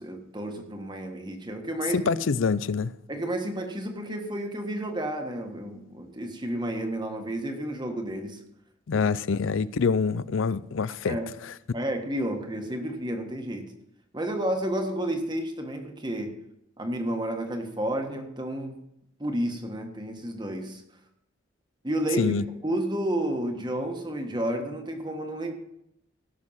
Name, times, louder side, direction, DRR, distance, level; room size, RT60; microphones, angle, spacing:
voice 1, 0.0-2.1 3.1-8.4 8.9-9.1 11.1-11.3 11.7-13.7 14.1-16.4 16.8-18.8 19.2-20.8 21.8-22.3 22.6-25.5, right 1 dB, 20° right, 1.4 m, -31 dB
voice 2, 1.8-2.9 8.9-11.5 22.1-22.5, left 5 dB, 75° left, 0.5 m, -26 dB
17.0 x 6.4 x 5.7 m
head